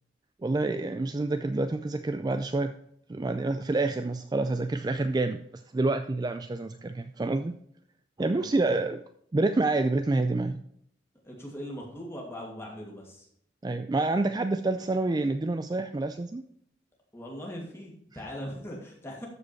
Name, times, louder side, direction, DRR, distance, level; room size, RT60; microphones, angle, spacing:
voice 1, 0.4-2.7 3.1-5.4 5.7-7.5 8.2-9.0 9.3-10.6 13.6-16.4, right 2 dB, 20° right, 9 dB, 0.3 m, -27 dB
voice 2, 8.3-8.6 11.2-13.3 17.1-19.3, equal, 15° left, -2 dB, 2.5 m, -40 dB
13.0 x 5.1 x 4.5 m, 0.69 s
head